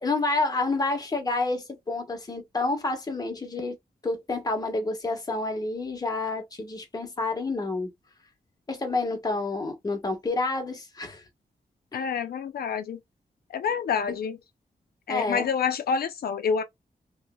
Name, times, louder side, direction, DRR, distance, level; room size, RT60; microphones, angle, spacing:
voice 1, 0.0-3.8 4.0-7.9 8.7-11.2 11.9-12.0 15.1-15.5, left 3 dB, 25° left, 1.1 m, -29 dB
voice 2, 11.9-13.0 13.5-14.4 15.1-16.6, left 6 dB, 80° left, 0.5 m, -27 dB
3.2 x 3.0 x 2.2 m
wide cardioid pair, 170°, 16 cm